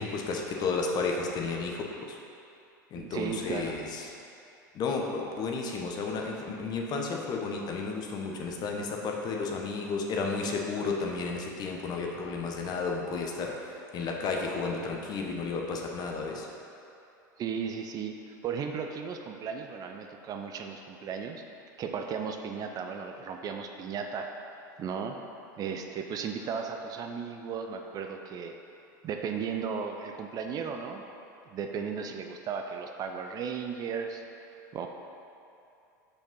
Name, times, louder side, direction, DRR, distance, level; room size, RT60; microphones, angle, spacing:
voice 1, 0.0-2.2 2.9-4.1 4.7-16.5, left 4 dB, 40° left, 0 dB, 1.2 m, -32 dB
voice 2, 2.9-3.8 17.4-21.4 21.8-24.3 24.8-25.2 25.6-28.5 29.0-31.0 31.5-34.2 34.5-34.9, right 6 dB, 40° right, 4 dB, 0.6 m, -35 dB
6.5 x 5.2 x 5.5 m, 2.7 s
hypercardioid pair, 90°, 10 cm